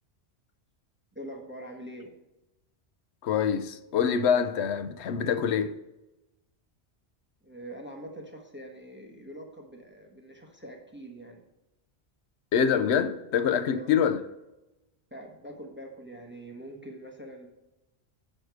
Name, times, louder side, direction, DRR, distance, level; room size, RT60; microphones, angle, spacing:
voice 1, 1.1-2.1 7.4-11.4 13.7-14.0 15.1-17.5, right 1 dB, 10° right, 1.0 m, -44 dB
voice 2, 3.2-5.8 12.5-14.2, left 7 dB, 75° left, 0.8 m, -25 dB
6.4 x 6.4 x 4.6 m
omnidirectional pair, 1.1 m